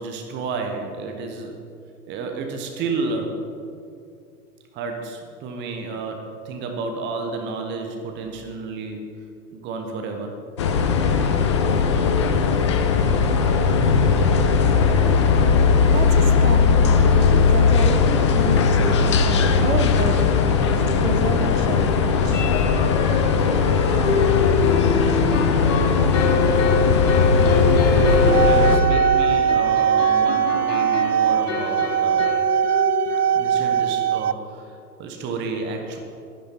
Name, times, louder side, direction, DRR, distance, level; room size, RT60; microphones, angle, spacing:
voice 1, 0.0-1.6 2.1-3.4 4.7-9.1 9.5-10.4 27.9-32.3 33.3-36.0, right 3 dB, 25° right, 3 dB, 1.1 m, -31 dB
sound 1, 10.6-28.8, left 5 dB, 20° left, 0.4 m, -18 dB
voice 2, 15.9-22.4, right 4 dB, 55° right, 6 dB, 1.3 m, -30 dB
sound 2, 18.4-18.5 18.9-19.0 19.3-19.4 22.3-33.8, left 3 dB, 50° left, 1.5 m, -25 dB
sound 3, 28.1-34.3, right 9 dB, 75° right, 0.5 m, -21 dB
12.0 x 11.0 x 4.4 m, 2.4 s
figure-of-eight pair, 100°, 47 cm